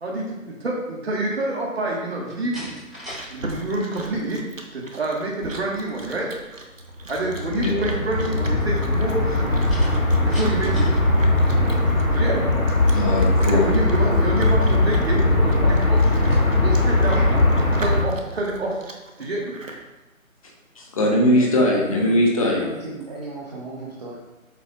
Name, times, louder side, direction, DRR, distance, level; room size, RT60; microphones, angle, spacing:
voice 1, 0.0-2.7 3.3-4.4 4.7-6.3 7.1-9.5 10.2-10.9 12.1-12.5 13.5-16.3 16.6-18.8 19.2-19.5, right 2 dB, 50° right, -3 dB, 1.7 m, -27 dB
Slam, 2.2-3.3 3.6-4.1 9.7-11.0, equal, ahead, 1.4 m, -38 dB
Chewing mastication, 3.0-19.8, right 2 dB, 65° right, 1.4 m, -39 dB
sound 1, 7.1-18.0, left 2 dB, 85° left, 1.9 m, -20 dB
voice 2, 7.5-7.9 12.9-13.7 20.8-22.6, left 1 dB, 25° left, -1 dB, 1.4 m, -20 dB
voice 3, 21.2-22.2 22.4-24.2, right 2 dB, 30° right, -5 dB, 1.0 m, -35 dB
8.0 x 7.7 x 2.5 m, 1.1 s
figure-of-eight pair, 150°, 41 cm